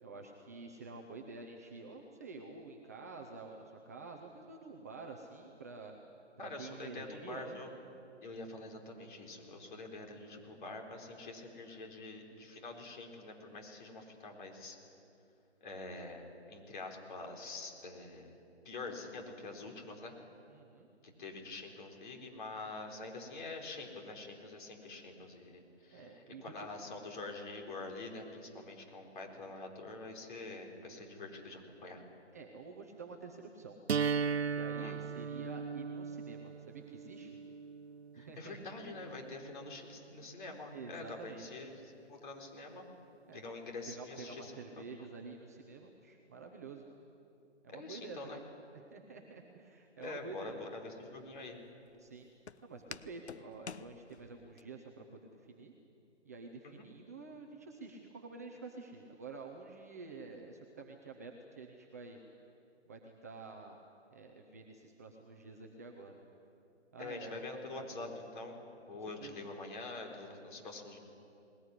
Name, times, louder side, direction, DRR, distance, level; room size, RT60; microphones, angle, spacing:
voice 1, 0.0-5.9 6.6-7.6 20.5-20.9 25.8-26.7 32.3-33.8 34.5-37.4 38.1-38.6 40.7-41.5 43.3-43.4 43.9-46.9 47.6-48.4 48.7-50.6 52.0-52.3 52.6-55.7 56.2-62.2 62.9-63.8 64.1-66.2 66.9-67.4 67.7-68.1 69.2-69.3, right 4 dB, 15° right, 1 dB, 0.6 m, -49 dB
voice 2, 6.4-7.7 8.2-14.8 15.6-18.3 18.6-20.2 21.2-32.0 34.8-35.0 38.1-42.9 43.3-44.5 47.7-48.4 50.0-51.6 56.6-56.8 67.0-68.6 68.9-71.0, left 3 dB, 45° left, 1 dB, 4.4 m, -46 dB
sound 1, 33.9-39.9, right 6 dB, 60° right, 0.7 m, -38 dB
Walk footsteps, 50.0-54.6, left 6 dB, 65° left, 0.9 m, -51 dB
20.0 x 19.5 x 9.7 m, 2.7 s
hypercardioid pair, 155°, 35 cm